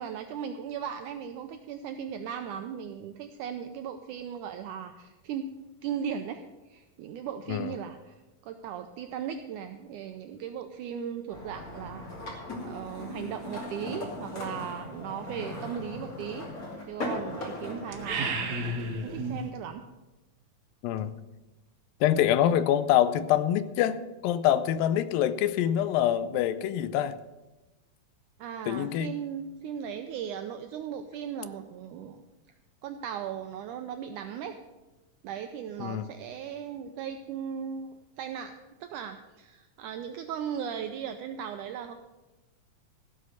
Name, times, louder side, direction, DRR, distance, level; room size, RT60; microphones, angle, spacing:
voice 1, 0.0-5.5 5.8-8.2 8.4-16.5 16.8-19.8 28.4-32.2 32.8-34.6 35.2-38.5 38.8-41.9, right 8 dB, 80° right, 7 dB, 1.8 m, -37 dB
sound 1, 11.3-18.3, left 1 dB, 25° left, 2.5 m, -38 dB
sound 2, 17.9-19.5, right 2 dB, 65° right, 1.7 m, -32 dB
voice 2, 20.8-21.1 22.0-27.1 28.7-29.1 35.8-36.1, left 11 dB, 80° left, 14 dB, 2.3 m, -25 dB
16.5 x 6.4 x 6.9 m, 1.1 s
omnidirectional pair, 4.1 m